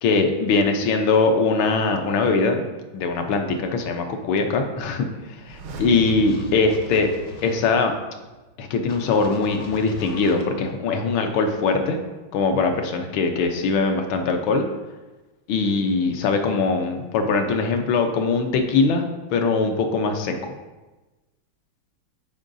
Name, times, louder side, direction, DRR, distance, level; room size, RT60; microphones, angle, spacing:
voice 1, 0.0-2.6 2.9-7.1 7.4-7.9 8.6-12.0 12.3-14.6 15.5-19.0 19.3-20.3, left 4 dB, 80° left, 5 dB, 1.5 m, -21 dB
sound 1, 5.3-8.2 8.5-8.6, right 1 dB, 90° right, 1.7 m, -37 dB
sound 2, 6.0-7.7 8.9-10.4, left 3 dB, 60° left, 1.2 m, -40 dB
11.0 x 4.6 x 2.6 m, 1.2 s
omnidirectional pair, 2.2 m